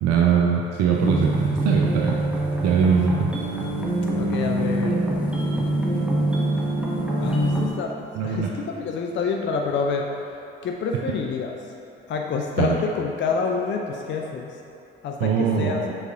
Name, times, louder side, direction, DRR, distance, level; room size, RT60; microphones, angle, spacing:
voice 1, 0.0-2.2 2.6-3.3 8.2-8.5 12.6-12.8 15.2-15.9, right 6 dB, 60° right, -1 dB, 0.6 m, -21 dB
sound 1, 0.9-7.7, right 1 dB, 5° right, 1.4 m, -24 dB
voice 2, 4.1-5.0 7.2-10.1 10.6-11.5 12.1-14.5 15.0-15.8, left 5 dB, 40° left, 2 dB, 0.6 m, -27 dB
6.6 x 4.9 x 3.7 m, 2.7 s
figure-of-eight pair, 50°, 29 cm